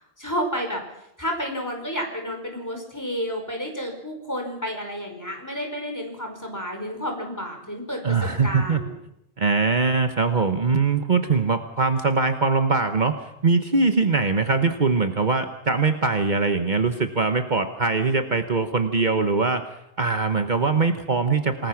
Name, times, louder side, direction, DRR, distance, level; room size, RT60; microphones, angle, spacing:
voice 1, 0.2-8.9, equal, 15° left, 3 dB, 5.0 m, -31 dB
voice 2, 8.0-8.8 9.4-13.1 13.4-19.7 20.0-21.7, right 4 dB, 45° right, 7 dB, 1.3 m, -22 dB
27.5 x 20.0 x 5.9 m, 0.81 s
omnidirectional pair, 1.1 m